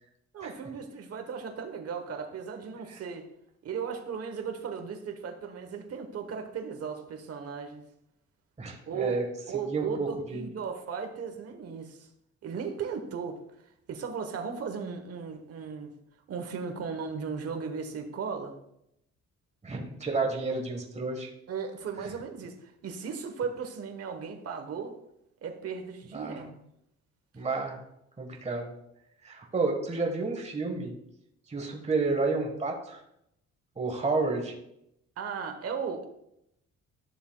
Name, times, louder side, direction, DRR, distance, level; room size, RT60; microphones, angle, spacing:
voice 1, 0.3-3.3 3.6-7.8 8.9-12.1 12.4-13.4 13.9-15.9 16.3-18.5 21.5-24.9 25.4-26.5 35.2-36.1, right 6 dB, 55° right, 5 dB, 1.1 m, -36 dB
voice 2, 8.6-9.3 9.5-10.5 19.6-21.3 26.1-26.5 27.3-27.8 28.2-28.7 29.2-30.9 31.5-33.0 33.8-34.5, right 3 dB, 20° right, 1 dB, 1.4 m, -31 dB
11.5 x 6.8 x 2.3 m, 0.78 s
cardioid pair, 90°, 30 cm